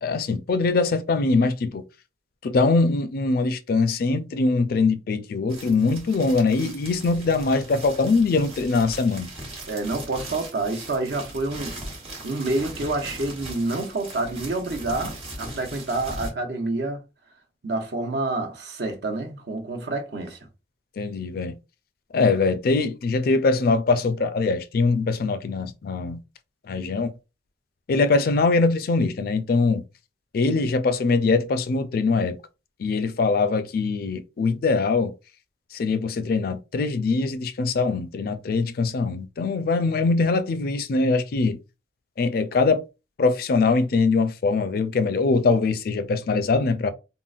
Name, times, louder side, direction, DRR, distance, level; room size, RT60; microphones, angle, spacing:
voice 1, 0.0-1.8 2.4-9.3 21.0-21.6 22.1-26.2 26.7-27.1 27.9-29.8 30.3-32.4 32.8-35.1 35.7-41.6 42.2-42.8 43.2-46.9, left 3 dB, 55° left, 0.4 m, -22 dB
sound 1, 5.5-16.3, right 1 dB, 30° right, 1.0 m, -39 dB
voice 2, 9.7-11.8 12.2-17.0 17.6-20.4, right 2 dB, 65° right, 0.7 m, -28 dB
3.7 x 2.1 x 2.4 m
head